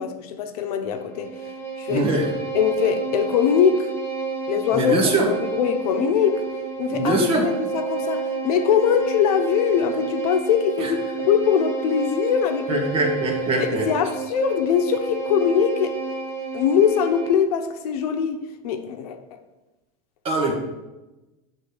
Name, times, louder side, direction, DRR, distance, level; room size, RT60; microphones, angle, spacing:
voice 1, 0.0-1.3 1.8-2.1 2.5-3.9 4.5-6.4 6.8-12.8 13.6-16.0 16.5-19.4, left 8 dB, 70° left, 7 dB, 0.9 m, -22 dB
Bowed string instrument, 0.9-17.5, right 4 dB, 10° left, 1.1 m, -30 dB
voice 2, 1.9-2.3 4.7-5.3 6.9-7.5 10.8-10.9 12.7-13.9 20.2-20.5, right 2 dB, 30° right, -1 dB, 1.7 m, -22 dB
8.7 x 3.9 x 6.5 m, 1.1 s
supercardioid pair, 165°, 20 cm